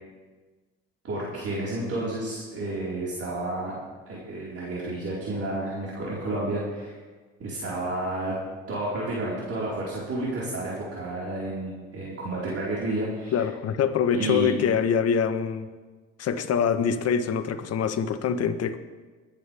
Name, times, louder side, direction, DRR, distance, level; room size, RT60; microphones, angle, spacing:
voice 1, 1.0-3.8 4.1-6.9 7.4-8.3 8.7-13.3 14.1-14.5, right 2 dB, 50° right, -7 dB, 4.5 m, -31 dB
voice 2, 13.3-15.7 16.2-18.8, left 7 dB, 55° left, 9 dB, 1.3 m, -24 dB
23.0 x 10.5 x 3.5 m, 1.3 s
supercardioid pair, 65°, 29 cm